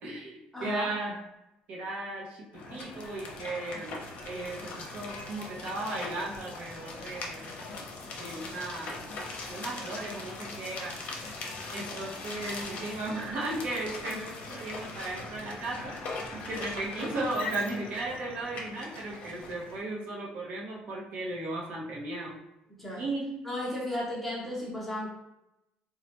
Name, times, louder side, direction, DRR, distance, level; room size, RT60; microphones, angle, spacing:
voice 1, 0.0-1.2 1.7-2.4 2.7-7.5 8.1-9.0 9.5-10.9 11.7-15.9 16.3-22.3 23.0-23.3, right 2 dB, 60° right, -3 dB, 0.8 m, -36 dB
voice 2, 0.5-0.9 22.8-23.0 23.4-25.1, left 1 dB, 5° left, -5 dB, 0.8 m, -34 dB
sound 1, 2.5-19.8, left 3 dB, 55° left, 0.6 m, -40 dB
3.1 x 2.3 x 2.9 m, 0.89 s
cardioid pair, 140°, 3 cm